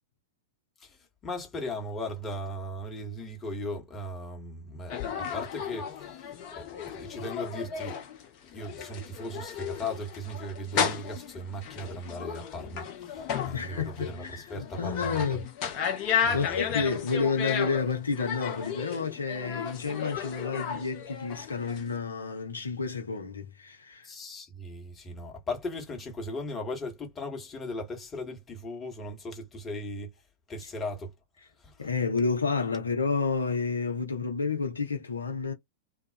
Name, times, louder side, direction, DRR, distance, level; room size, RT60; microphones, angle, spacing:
voice 1, 0.8-8.0 8.5-15.4 16.2-16.8 24.0-30.1 30.5-31.1 31.6-31.8, left 1 dB, 20° left, 1.3 m, -38 dB
sound 1, 4.9-22.0, left 7 dB, 40° left, 0.7 m, -34 dB
voice 2, 13.5-15.5 15.8-24.1 31.8-35.5, left 5 dB, 75° left, 0.7 m, -30 dB
2.4 x 2.0 x 2.5 m
figure-of-eight pair, 95°, 0 cm